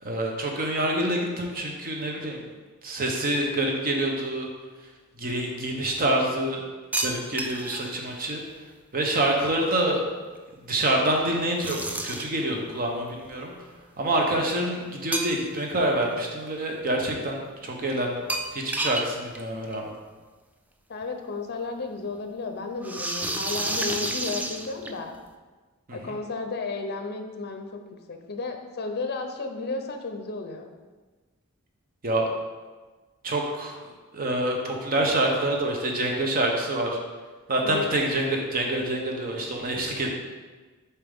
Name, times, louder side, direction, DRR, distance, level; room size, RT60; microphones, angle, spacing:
voice 1, 0.0-2.4 2.8-4.5 5.2-6.6 7.0-8.4 8.9-10.0 10.6-11.8 12.0-13.6 14.0-18.3 18.5-19.9 25.9-26.1 32.0-32.3 33.2-33.8 34.1-37.0 37.5-40.1, right 1 dB, 40° right, 1 dB, 0.8 m, -26 dB
sound 1, 6.9-7.9 11.6-12.4 15.1-15.7 16.1-16.2 18.3-19.1 19.3-19.4 19.7-19.8 21.0-21.1 22.8-25.2, right 1 dB, 5° right, 0.3 m, -30 dB
voice 2, 20.9-25.1 25.9-27.8 28.1-30.7 37.6-38.0, left 3 dB, 50° left, 5 dB, 0.7 m, -33 dB
7.2 x 4.4 x 3.6 m, 1.3 s
head